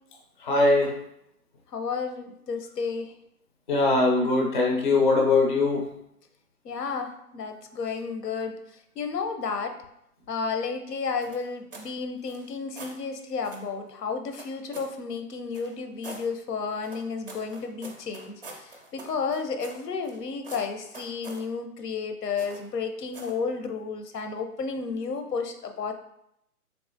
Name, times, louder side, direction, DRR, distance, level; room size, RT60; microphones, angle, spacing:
voice 1, 0.4-1.0 3.7-5.9, left 3 dB, 35° left, 1 dB, 0.4 m, -21 dB
voice 2, 1.7-3.1 6.6-9.8 10.3-25.9, left 5 dB, 85° left, 7 dB, 0.6 m, -32 dB
sound 1, 11.2-11.9 12.2-13.0 13.4-13.7 14.3-15.0 15.5-16.3 16.8-20.2 20.4-21.5 22.4-22.7 23.1-23.4, right 2 dB, 40° right, 0.4 m, -44 dB
3.5 x 2.9 x 2.6 m, 0.77 s
hypercardioid pair, 145°, 47 cm